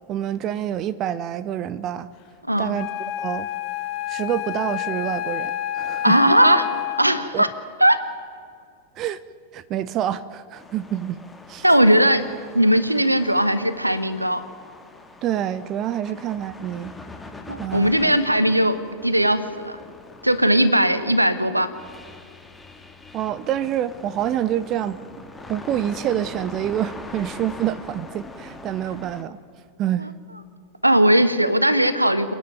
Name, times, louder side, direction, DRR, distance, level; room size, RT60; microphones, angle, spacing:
voice 1, 0.1-2.1 2.6-2.9 3.2-3.5 4.1-6.2 7.3-7.4 9.0-9.2 9.5-11.2 11.5-11.6 15.2-16.9 17.6-18.1 23.1-25.0 25.5-29.4 29.8-30.1, right 11 dB, 35° right, 17 dB, 0.7 m, -27 dB
Wind instrument woodwind instrument, 2.7-7.3, left 12 dB, 40° left, 1.5 m, -29 dB
voice 2, 6.0-6.7 7.0-7.5 7.8-8.0 11.6-12.2 12.5-14.4 16.1-16.2 17.5-18.8 19.0-19.7 20.2-21.7 30.8-32.3, right 1 dB, 85° right, 13 dB, 1.1 m, -18 dB
sound 1, 10.5-29.2, left 2 dB, 10° left, 1.9 m, -42 dB
29.0 x 10.5 x 9.2 m, 2.2 s
figure-of-eight pair, 90°, 0 cm